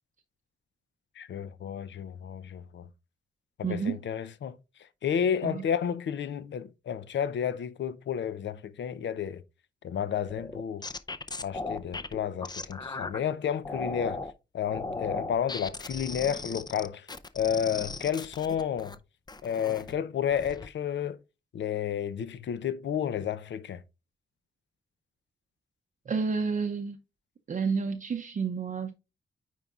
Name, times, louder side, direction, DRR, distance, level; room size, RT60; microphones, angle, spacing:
voice 1, 1.2-2.9 3.6-4.6 5.0-9.4 9.8-10.9 11.4-14.2 14.5-17.1 17.3-18.9 19.4-21.2 21.5-23.8, left 8 dB, 70° left, 0.6 m, -31 dB
voice 2, 3.6-4.0 5.4-5.6 26.1-27.0 27.5-28.9, right 5 dB, 40° right, 0.6 m, -30 dB
sound 1, 10.3-13.2 13.6-14.3 14.7-18.9 19.3-19.9 20.3-20.7, left 3 dB, 20° left, 0.5 m, -37 dB
9.1 x 4.6 x 2.4 m
cardioid pair, 95°, 19 cm